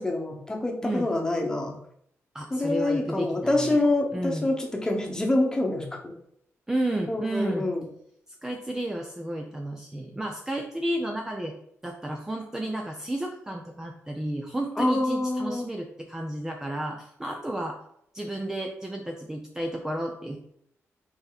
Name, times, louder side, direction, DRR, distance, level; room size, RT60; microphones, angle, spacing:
voice 1, 0.0-1.7 2.5-6.1 7.1-7.8 14.8-15.6, left 2 dB, 15° left, 1 dB, 1.1 m, -26 dB
voice 2, 2.3-3.8 4.1-4.5 6.7-7.7 8.4-11.5 11.8-17.8 18.1-20.4, right 1 dB, 10° right, 1 dB, 0.6 m, -32 dB
5.6 x 4.2 x 4.0 m, 0.72 s
wide cardioid pair, 145°, 5 cm